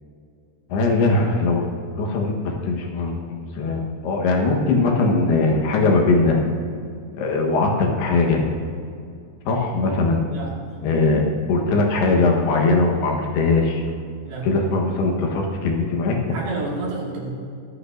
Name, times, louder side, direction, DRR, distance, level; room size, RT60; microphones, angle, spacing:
voice 1, 0.7-1.7 2.0-6.4 7.2-8.5 9.5-10.2 10.8-11.2 11.5-13.8 14.4-16.2, left 3 dB, 90° left, 1 dB, 3.5 m, -20 dB
voice 2, 10.3-10.8 14.2-14.5 16.3-17.3, right 3 dB, 70° right, -3 dB, 4.0 m, -30 dB
24.0 x 8.6 x 2.7 m, 2.3 s
omnidirectional pair, 4.4 m